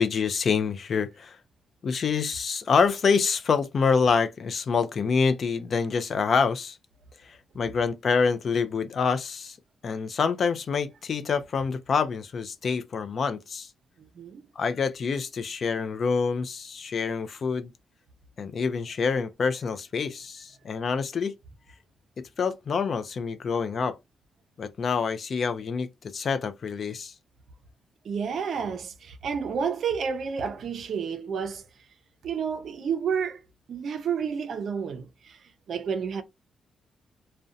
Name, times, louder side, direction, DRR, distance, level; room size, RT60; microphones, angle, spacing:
voice 1, 0.0-1.4 1.8-6.8 7.2-9.6 9.8-13.7 14.6-17.7 18.4-21.3 22.4-24.0 24.6-27.1, left 5 dB, 50° left, 0.4 m, -26 dB
voice 2, 14.0-14.5 28.0-31.6 32.2-33.4 33.7-35.4 35.7-36.2, right 6 dB, 65° right, 0.5 m, -30 dB
2.6 x 2.1 x 2.4 m
cardioid pair, 100°, 0 cm